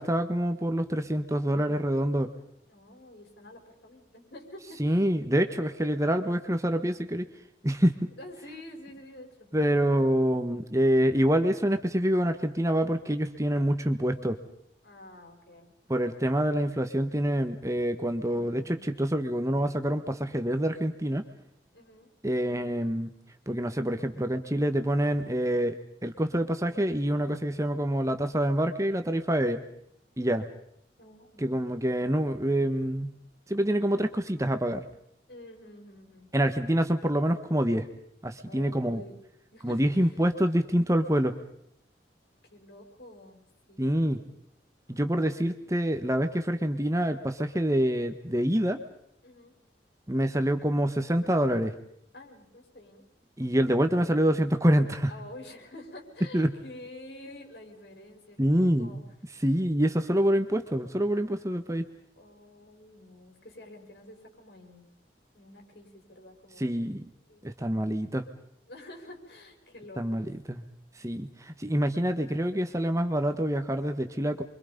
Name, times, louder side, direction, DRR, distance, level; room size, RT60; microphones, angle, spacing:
voice 1, 0.0-2.3 4.8-7.2 7.6-8.0 9.5-14.4 15.9-21.2 22.2-23.1 23.5-29.6 30.2-30.5 31.4-33.1 33.5-34.8 36.3-37.9 38.2-39.0 39.6-41.4 43.8-44.2 44.9-48.8 50.1-51.7 53.4-55.1 56.3-56.5 58.4-59.0 59.4-61.8 66.6-67.0 67.4-68.3 70.0-70.6 71.0-74.4, equal, 15° right, 8 dB, 1.3 m, -26 dB
voice 2, 2.7-5.0 8.2-9.5 14.8-15.7 18.1-18.8 21.7-22.1 31.0-31.5 35.3-36.3 38.4-39.2 39.5-39.8 42.5-44.4 44.9-45.4 49.2-49.5 52.1-53.1 55.1-59.0 62.2-64.9 65.3-66.8 67.3-67.4 68.7-70.3, left 1 dB, 65° left, 3 dB, 5.8 m, -48 dB
28.5 x 24.5 x 5.3 m, 0.72 s
head